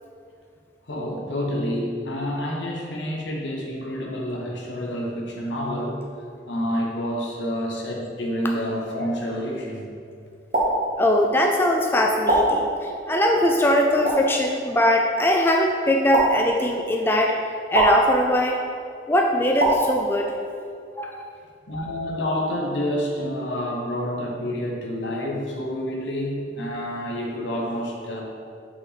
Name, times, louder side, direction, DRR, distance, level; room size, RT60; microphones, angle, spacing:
voice 1, 0.9-6.1 6.5-9.9 21.7-28.2, equal, 80° left, -1 dB, 1.1 m, -28 dB
sound 1, 10.5-10.7 12.3-12.4 14.0-14.2 16.1-16.3 17.7-17.9 19.6-19.7, right 2 dB, 50° right, 1.5 m, -20 dB
voice 2, 11.0-17.3 17.7-18.6 19.1-20.3 21.0-21.2, left 1 dB, 10° left, 1 dB, 0.3 m, -21 dB
5.9 x 5.2 x 4.1 m, 2.3 s
head